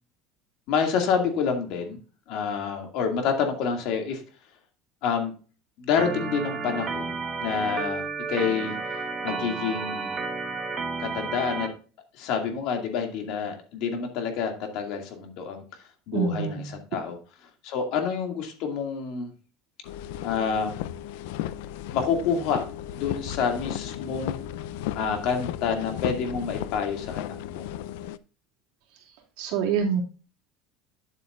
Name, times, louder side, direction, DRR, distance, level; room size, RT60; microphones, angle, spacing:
voice 1, 0.7-2.0 2.3-4.2 5.0-5.3 5.8-7.1 7.4-8.7 9.2-10.1 11.0-11.7 12.1-15.6 16.1-17.2 17.6-19.3 20.2-20.8 21.9-22.6 22.9-24.4 24.9-27.7, left 6 dB, 55° left, 4 dB, 2.3 m, -28 dB
Organ, 6.0-11.7, right 4 dB, 25° right, 1.3 m, -32 dB
voice 2, 16.1-16.7 29.4-30.0, right 6 dB, 65° right, 0 dB, 2.8 m, -26 dB
sound 1, 19.9-28.2, left 12 dB, 85° left, 0.5 m, -35 dB
9.8 x 8.1 x 2.5 m, 0.36 s
cardioid pair, 170°, 0 cm